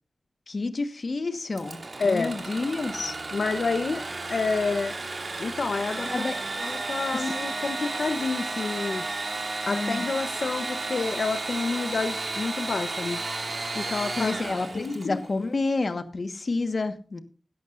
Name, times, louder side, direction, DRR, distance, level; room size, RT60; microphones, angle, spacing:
voice 1, 0.5-3.1 6.1-6.4 7.1-7.3 9.7-10.0 14.2-17.2, left 3 dB, 50° left, 9 dB, 1.4 m, -29 dB
Engine / Sawing, 1.5-15.2, right 3 dB, 45° right, 2.6 m, -33 dB
voice 2, 2.0-2.3 3.3-4.9 5.4-6.1 6.6-9.0 9.6-13.2 13.7-14.3 14.7-15.2, left 4 dB, 65° left, 8 dB, 0.8 m, -28 dB
17.0 x 12.0 x 2.5 m, 0.36 s
wide cardioid pair, 110°, 0 cm